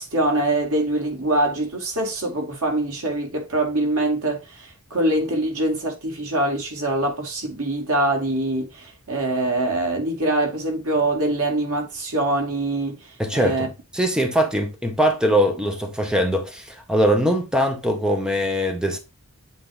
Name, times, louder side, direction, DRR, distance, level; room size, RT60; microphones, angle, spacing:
voice 1, 0.0-13.0 13.3-13.7, right 1 dB, 85° right, 2.3 m, -24 dB
voice 2, 13.2-19.0, equal, 5° right, 0.9 m, -22 dB
8.1 x 2.7 x 4.8 m
head